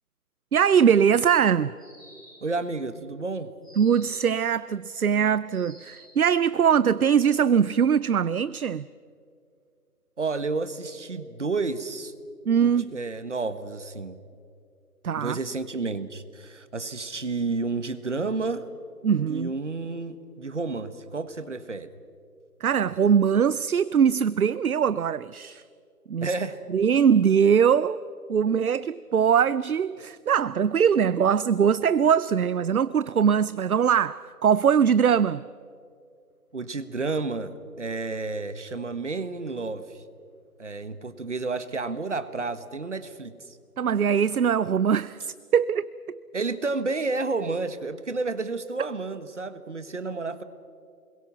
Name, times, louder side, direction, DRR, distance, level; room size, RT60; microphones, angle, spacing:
voice 1, 0.5-1.7 3.8-8.9 12.5-12.9 15.0-15.4 19.0-19.5 22.6-25.6 26.1-26.3 26.7-28.0 28.3-35.4 43.8-45.9, right 7 dB, 65° right, 0.6 m, -22 dB
sound 1, 1.8-2.6 3.6-4.4 5.5-6.2, equal, ahead, 2.8 m, -51 dB
voice 2, 2.4-3.5 10.2-12.1 12.6-14.2 15.2-18.7 19.3-21.9 26.2-26.6 36.5-40.0 40.6-43.6 46.3-50.4, right 3 dB, 50° right, 1.4 m, -31 dB
28.5 x 22.0 x 5.9 m
figure-of-eight pair, 170°, 47 cm